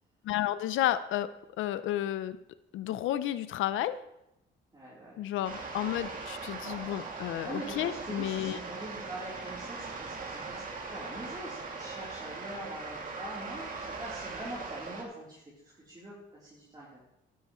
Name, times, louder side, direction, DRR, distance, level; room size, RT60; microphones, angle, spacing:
voice 1, 0.2-1.3 1.6-2.4 2.7-4.0 5.2-8.6, left 12 dB, 85° left, 14 dB, 0.6 m, -31 dB
voice 2, 4.7-5.2 6.6-7.0 7.4-10.6 10.9-15.5 15.9-17.0, right 1 dB, 20° right, -7 dB, 3.5 m, -43 dB
sound 1, 5.4-15.0, right 4 dB, 45° right, 2.5 m, -40 dB
12.5 x 11.0 x 3.1 m, 0.86 s
cardioid pair, 90°, 20 cm